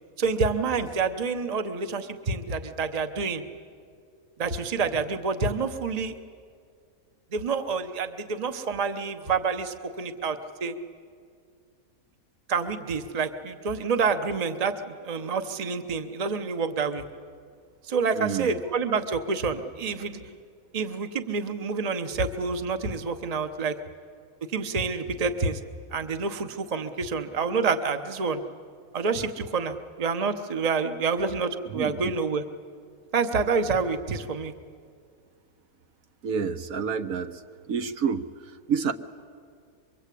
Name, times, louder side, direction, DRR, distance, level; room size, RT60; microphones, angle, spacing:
voice 1, 0.2-3.4 4.4-6.1 7.3-10.7 12.5-17.0 17.9-20.2 20.7-23.8 24.5-25.6 25.9-28.4 28.9-32.4 33.1-34.5, right 4 dB, 30° right, 9 dB, 0.9 m, -28 dB
voice 2, 18.1-18.6 31.7-32.0 36.2-37.4 37.7-38.9, right 6 dB, 70° right, 8 dB, 1.3 m, -29 dB
24.5 x 22.5 x 8.4 m, 2.2 s
omnidirectional pair, 1.5 m